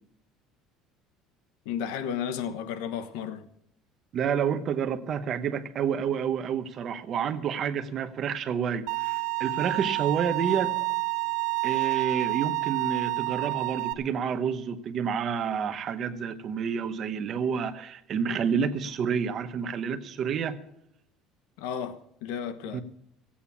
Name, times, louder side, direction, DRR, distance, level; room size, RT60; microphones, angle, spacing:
voice 1, 1.6-3.5 21.6-22.8, left 8 dB, 85° left, 1.2 m, -33 dB
voice 2, 4.1-10.8 11.6-20.6 22.7-22.8, right 7 dB, 35° right, 0.9 m, -29 dB
Bowed string instrument, 8.9-13.9, right 29 dB, 70° right, 0.8 m, -29 dB
15.5 x 8.6 x 7.2 m
cardioid pair, 170°, 0 cm